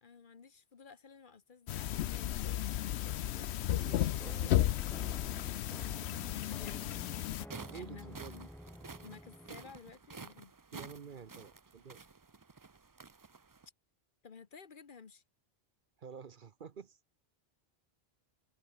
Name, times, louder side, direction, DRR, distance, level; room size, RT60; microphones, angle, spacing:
voice 1, 0.0-3.2 6.5-7.1 7.7-8.5 9.0-10.5 14.2-15.2, left 5 dB, 50° left, 1.2 m, -54 dB
sound 1, 1.7-7.4, left 12 dB, 85° left, 0.9 m, -34 dB
voice 2, 3.2-4.6 7.7-8.4 9.5-9.6 10.7-12.0 16.0-17.0, right 6 dB, 55° right, 1.0 m, -50 dB
sound 2, 4.2-9.8, equal, ahead, 1.1 m, -51 dB
sound 3, 7.2-13.7, right 4 dB, 25° right, 0.4 m, -51 dB
omnidirectional pair, 1.1 m